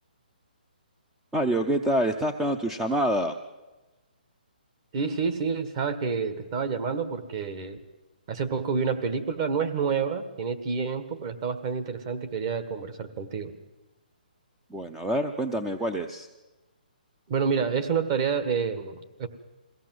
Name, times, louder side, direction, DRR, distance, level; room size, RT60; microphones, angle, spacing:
voice 1, 1.3-3.4 14.7-16.3, right 1 dB, 5° right, 6 dB, 0.6 m, -26 dB
voice 2, 4.9-7.8 8.3-13.5 17.3-19.3, right 6 dB, 30° right, 8 dB, 1.6 m, -28 dB
22.5 x 16.0 x 7.8 m, 1.1 s
hypercardioid pair, 160°, 5 cm